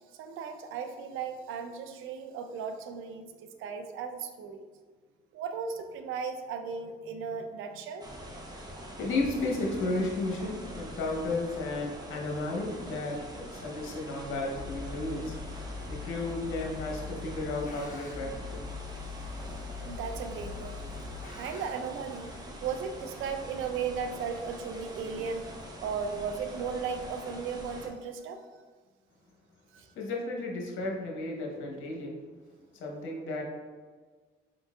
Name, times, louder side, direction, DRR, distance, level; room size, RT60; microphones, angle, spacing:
voice 1, 0.2-4.7 5.3-8.1 19.8-20.9 21.4-25.5 25.8-28.4 29.7-29.9, right 6 dB, 85° right, 7 dB, 0.5 m, -36 dB
sound 1, 8.0-27.9, equal, 20° right, 0.8 m, -44 dB
voice 2, 9.0-15.3 15.9-18.6 30.0-32.2 32.7-33.4, left 2 dB, 85° left, 0 dB, 1.0 m, -33 dB
sound 2, 14.5-21.7, left 5 dB, 45° left, 1.3 m, -42 dB
5.1 x 3.8 x 2.4 m, 1.5 s
cardioid pair, 90°, 20 cm